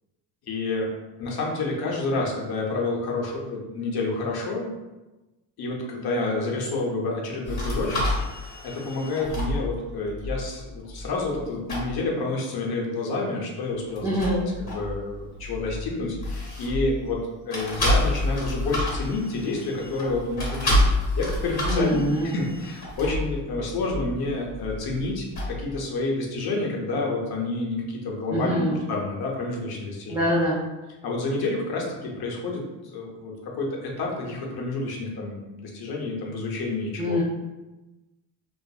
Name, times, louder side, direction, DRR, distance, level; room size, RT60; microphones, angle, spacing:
voice 1, 0.5-0.9 1.2-4.7 5.6-8.0 8.6-30.2 31.0-37.2, left 2 dB, 60° left, -2 dB, 0.8 m, -29 dB
sound 1, 7.4-11.4 11.7-12.0 13.9-17.2 17.5-25.8, left 1 dB, 40° left, 1.1 m, -29 dB
voice 2, 14.0-14.4 21.7-22.3 28.3-28.8 30.1-30.6 37.0-37.2, equal, 10° right, -8 dB, 0.5 m, -24 dB
2.6 x 2.4 x 2.3 m, 1.1 s
cardioid pair, 100°, 42 cm